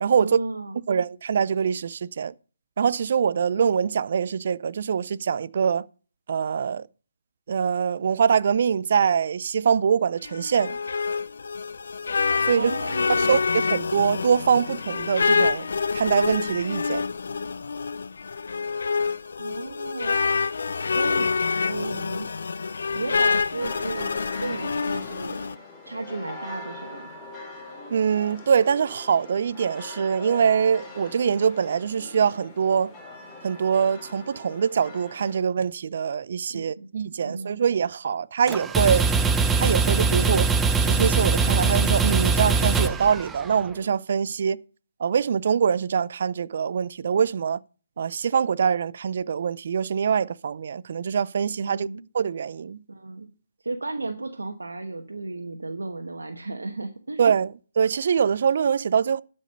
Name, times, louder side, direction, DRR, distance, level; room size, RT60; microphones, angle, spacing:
voice 1, 0.2-0.8 12.5-13.3 19.4-20.1 20.9-21.3 21.7-22.3 22.9-25.4 25.8-27.1 36.5-37.6 40.2-40.5 51.6-52.0 52.9-53.3 53.6-57.3, right 2 dB, 90° right, 1.1 m, -34 dB
voice 2, 0.9-2.3 2.8-5.9 6.3-6.9 7.5-10.8 12.5-12.7 13.2-17.0 27.9-32.9 33.4-39.1 39.5-40.4 40.8-44.6 45.0-47.6 48.0-51.9 52.1-52.8 57.2-59.2, right 7 dB, 55° right, 0.4 m, -24 dB
sound 1, 10.2-25.5, left 5 dB, 70° left, 0.5 m, -27 dB
sound 2, 23.6-35.4, left 2 dB, 15° left, 3.0 m, -42 dB
sound 3, 38.5-43.7, right 4 dB, 10° right, 0.6 m, -22 dB
12.0 x 5.2 x 5.3 m
hypercardioid pair, 150°, 0 cm